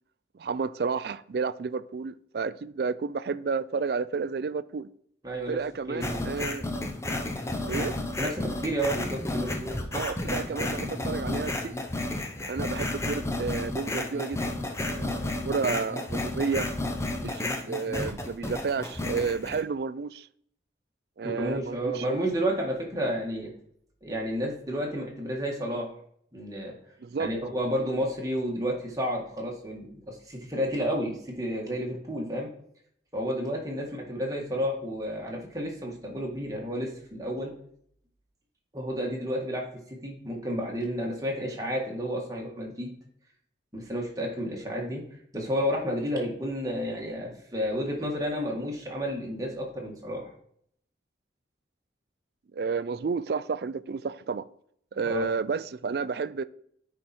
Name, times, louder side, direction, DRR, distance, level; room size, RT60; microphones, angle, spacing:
voice 1, 0.3-4.9 5.5-6.7 7.7-7.9 9.9-11.8 12.5-16.7 17.2-20.3 21.2-22.0 27.0-27.3 52.5-54.5 54.9-56.4, right 5 dB, 55° right, 0.3 m, -31 dB
voice 2, 5.2-5.6 5.9-6.3 8.2-9.7 21.2-23.5 24.0-25.9 26.3-26.7 27.2-32.5 33.1-37.5 38.7-42.9 43.7-45.0 45.3-50.3 55.0-55.2, equal, 20° right, 1.7 m, -31 dB
sound 1, 6.0-19.6, left 2 dB, 15° left, 0.7 m, -32 dB
9.5 x 4.7 x 4.3 m
head